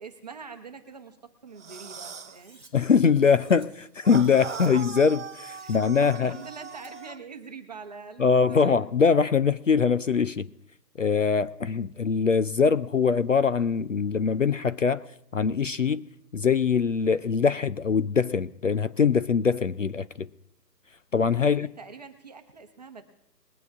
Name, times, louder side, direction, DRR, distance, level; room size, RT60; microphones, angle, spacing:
voice 1, 0.0-2.6 5.6-8.8 21.3-23.0, right 5 dB, 25° right, 1.0 m, -44 dB
sound 1, 1.6-2.4 4.0-7.2, right 6 dB, 50° right, 0.4 m, -39 dB
Cutlery silverware, 2.2-2.7 3.2-3.7 4.2-4.7 5.2-5.8 6.1-6.9, right 2 dB, 5° left, 1.2 m, -56 dB
voice 2, 2.7-6.3 8.2-10.5 11.0-15.0 15.3-16.0 16.3-20.3 21.1-21.7, left 6 dB, 50° left, 0.5 m, -23 dB
21.0 x 9.2 x 3.6 m
hypercardioid pair, 165°, 49 cm